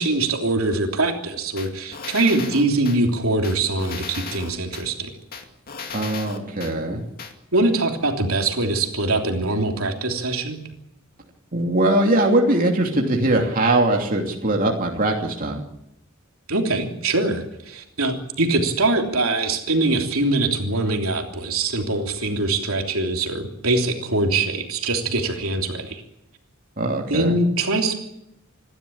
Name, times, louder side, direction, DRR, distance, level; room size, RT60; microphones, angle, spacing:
voice 1, 0.0-5.1 6.8-7.0 7.5-10.6 16.5-26.0 27.1-28.0, right 2 dB, 75° right, 2 dB, 3.2 m, -23 dB
sound 1, 1.6-3.0 3.4-4.9 5.3-6.7 7.2-7.3, left 6 dB, 45° left, 2.3 m, -35 dB
voice 2, 5.9-7.0 11.5-15.6 26.8-27.3, right 1 dB, 40° right, 0 dB, 2.9 m, -21 dB
27.5 x 12.5 x 8.8 m, 0.82 s
head